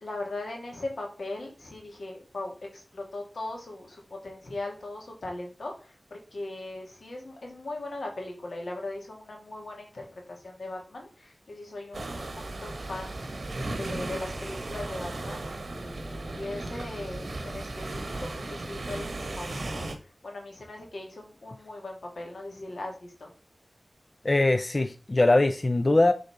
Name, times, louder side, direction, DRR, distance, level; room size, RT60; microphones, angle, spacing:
voice 1, 0.0-12.3 12.6-13.2 13.8-19.9 20.2-23.3, left 2 dB, 90° left, 2.2 m, -39 dB
sound 1, 11.9-20.0, right 2 dB, 75° right, 1.1 m, -36 dB
voice 2, 24.2-26.1, left 2 dB, 40° left, 0.5 m, -22 dB
6.6 x 3.9 x 4.8 m
wide cardioid pair, 75°, 0 cm